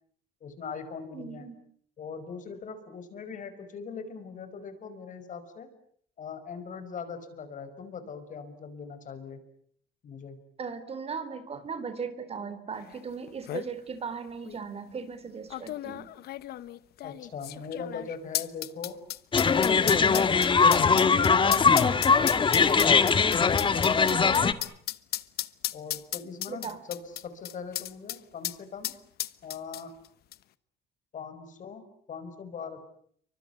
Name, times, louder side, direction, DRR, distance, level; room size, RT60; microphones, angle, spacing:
voice 1, 0.4-1.5 2.0-5.7 6.2-9.4 10.0-10.4 17.0-19.0 19.8-23.3 25.7-29.0 29.4-29.9 31.1-31.8 32.1-32.8, left 6 dB, 50° left, 11 dB, 5.6 m, -41 dB
voice 2, 1.1-1.6 10.6-16.1 24.1-24.5 26.5-26.8, right 5 dB, 35° right, 13 dB, 3.5 m, -38 dB
sound 1, 12.9-13.0 13.3-13.7 14.5-14.6 15.5-28.2 28.4-28.6 28.8-30.1 30.3-30.4, left 14 dB, 70° left, 1.1 m, -34 dB
sound 2, 19.3-24.5, left 5 dB, 30° left, 1.7 m, -21 dB
29.0 x 24.5 x 8.2 m, 0.64 s
cardioid pair, 110°, 17 cm